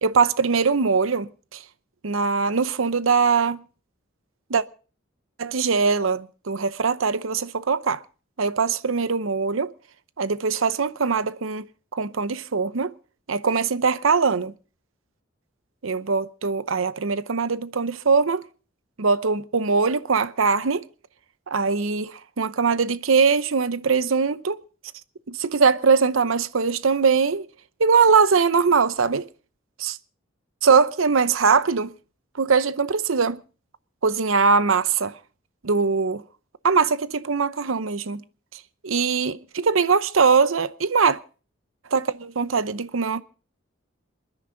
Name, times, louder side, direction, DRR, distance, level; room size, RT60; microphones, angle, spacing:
voice 1, 0.0-1.6 2.0-3.6 4.5-4.6 5.4-8.0 8.4-9.7 10.2-11.7 11.9-12.9 13.3-14.5 15.8-18.4 19.0-20.8 21.5-24.6 25.3-27.5 27.8-29.3 29.8-30.0 30.6-31.9 32.4-33.4 34.0-35.2 35.6-36.2 36.6-38.2 38.8-41.2 41.9-43.2, right 5 dB, 80° right, 0.8 m, -21 dB
27.5 x 10.0 x 3.9 m
head